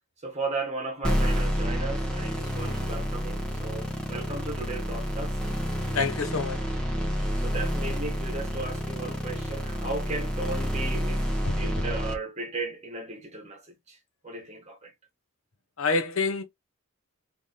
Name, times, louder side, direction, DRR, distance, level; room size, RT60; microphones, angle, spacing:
voice 1, 0.2-5.4 7.4-11.3 11.6-14.0 14.2-14.9, right 3 dB, 30° right, 1.5 m, -36 dB
sound 1, 1.0-12.1, equal, 5° left, 1.3 m, -29 dB
voice 2, 5.9-6.7 11.5-11.6 15.8-16.4, left 4 dB, 65° left, 1.1 m, -27 dB
3.6 x 3.5 x 4.1 m
head